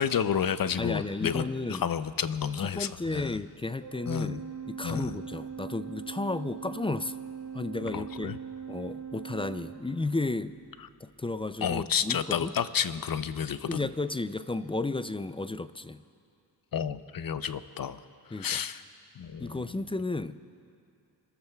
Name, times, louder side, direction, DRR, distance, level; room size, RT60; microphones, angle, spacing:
voice 1, 0.0-3.4 4.1-4.4 4.8-5.2 7.9-8.4 11.6-13.9 16.7-18.0 18.4-18.8 19.2-19.6, left 7 dB, 55° left, 13 dB, 0.6 m, -30 dB
voice 2, 0.8-1.8 2.6-7.2 7.5-8.4 8.7-10.6 11.0-12.5 13.7-16.0 18.3-18.6 19.4-20.4, left 2 dB, 15° left, 13 dB, 0.3 m, -33 dB
Organ, 3.8-10.3, right 7 dB, 60° right, 3.1 m, -41 dB
26.0 x 14.0 x 2.3 m, 2.5 s
cardioid pair, 50°, 43 cm